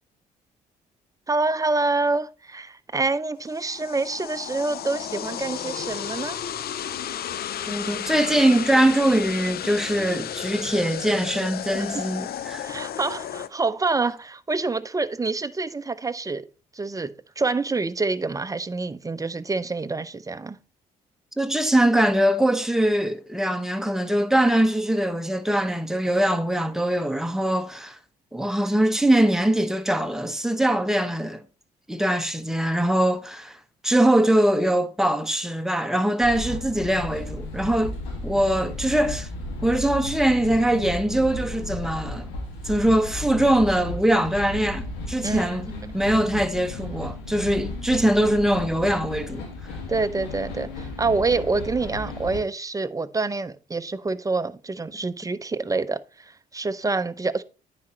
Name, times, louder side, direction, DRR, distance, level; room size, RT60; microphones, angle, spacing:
voice 1, 1.3-6.4 11.7-12.0 12.6-16.4 16.7-20.6 45.2-45.9 49.9-57.4, right 3 dB, 20° right, 0.7 m, -27 dB
sound 1, 3.5-13.5, left 10 dB, 55° left, 0.6 m, -33 dB
voice 2, 7.6-12.7 21.4-28.0 28.3-31.4 31.9-33.6 33.8-38.0 38.2-39.3 39.6-42.3 42.6-45.7 45.9-49.4, right 1 dB, ahead, 1.1 m, -22 dB
sound 2, 36.2-52.4, left 2 dB, 80° left, 2.1 m, -34 dB
9.5 x 5.0 x 3.1 m
hypercardioid pair, 50°, 19 cm